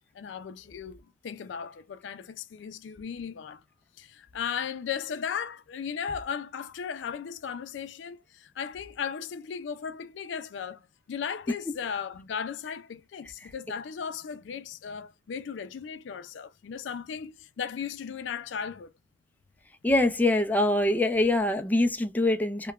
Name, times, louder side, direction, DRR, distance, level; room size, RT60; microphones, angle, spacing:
voice 1, 0.1-3.6 4.0-18.9, left 7 dB, 90° left, 0.4 m, -36 dB
voice 2, 19.8-22.7, left 1 dB, 10° left, 0.3 m, -24 dB
2.9 x 2.1 x 2.3 m
head